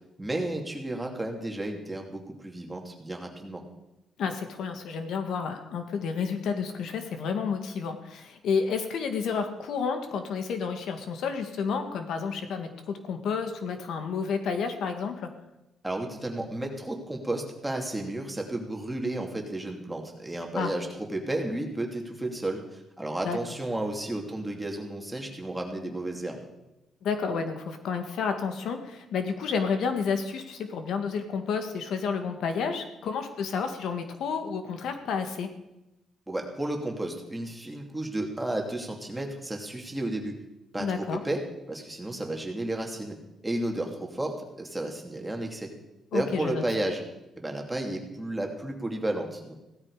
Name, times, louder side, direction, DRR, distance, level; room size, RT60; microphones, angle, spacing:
voice 1, 0.2-3.6 15.8-26.4 36.3-40.4 40.7-41.4 41.7-43.1 43.4-45.7 46.1-47.0 47.4-49.5, right 1 dB, 10° right, 1 dB, 2.8 m, -32 dB
voice 2, 4.2-15.3 20.5-20.7 23.2-23.4 27.0-35.5 40.8-41.2 46.1-46.6, left 5 dB, 75° left, 7 dB, 1.8 m, -30 dB
16.5 x 13.5 x 5.0 m, 0.94 s
cardioid pair, 115°, 0 cm